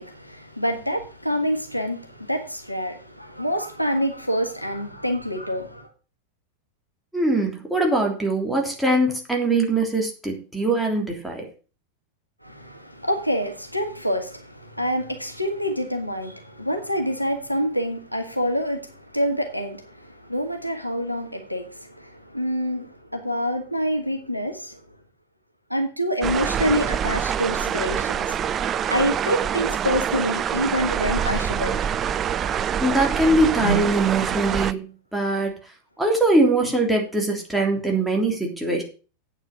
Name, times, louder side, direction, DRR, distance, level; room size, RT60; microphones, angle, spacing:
voice 1, 0.0-5.9 12.4-18.9 19.1-24.8 25.7-28.3 28.9-31.8, equal, 90° left, 1.5 m, -26 dB
voice 2, 7.1-11.5 32.8-35.5 36.0-38.8, right 2 dB, ahead, 3.3 m, -22 dB
sound 1, 26.2-34.7, right 8 dB, 25° right, 0.5 m, -25 dB
8.9 x 8.2 x 6.4 m
figure-of-eight pair, 90°, 0 cm